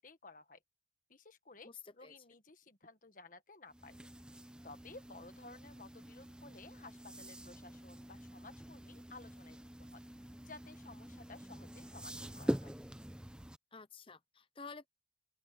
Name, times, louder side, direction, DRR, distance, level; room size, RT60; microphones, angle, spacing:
voice 1, 0.0-0.6 1.1-4.1 4.6-10.0 10.4-12.7, left 3 dB, 45° left, 1.6 m, -55 dB
voice 2, 1.6-2.2 13.7-14.9, left 4 dB, 30° left, 0.9 m, -51 dB
sound 1, 3.7-13.6, equal, 5° right, 0.8 m, -45 dB
open air
head